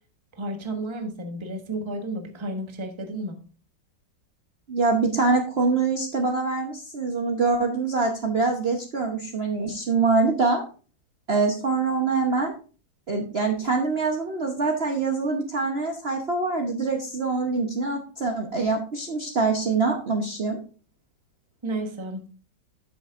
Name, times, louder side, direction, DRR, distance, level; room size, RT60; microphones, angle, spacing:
voice 1, 0.3-3.4 21.6-22.3, right 1 dB, 20° right, 5 dB, 1.1 m, -32 dB
voice 2, 4.7-10.6 11.3-12.5 13.1-20.6, right 4 dB, 40° right, 1 dB, 1.0 m, -24 dB
12.5 x 6.8 x 2.5 m, 0.37 s
omnidirectional pair, 2.0 m